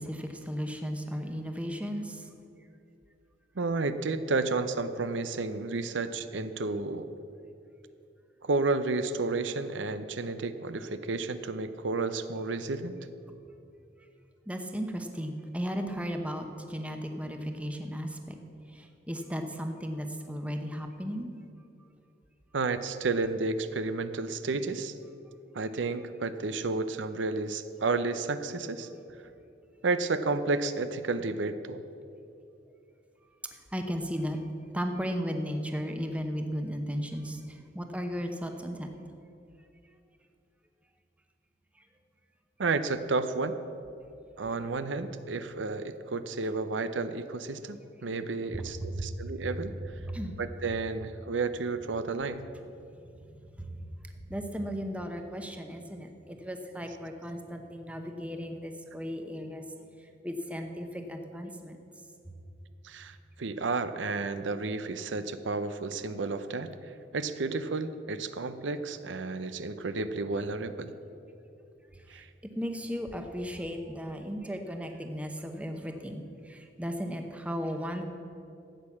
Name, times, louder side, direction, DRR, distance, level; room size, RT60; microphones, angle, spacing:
voice 1, 0.0-2.3 14.5-18.4 18.7-21.3 33.4-34.4 34.7-38.9 48.5-49.2 50.0-50.4 53.6-53.9 54.2-59.6 60.2-61.8 71.9-72.2 72.6-78.0, equal, 5° right, 5 dB, 0.9 m, -35 dB
voice 2, 3.6-7.1 8.4-13.0 22.5-25.0 25.5-28.9 29.8-31.8 42.6-43.6 44.4-49.7 50.4-52.5 62.8-66.7 67.1-70.9 72.1-72.3, right 3 dB, 80° right, 11 dB, 0.6 m, -31 dB
14.0 x 8.6 x 7.3 m, 2.7 s
head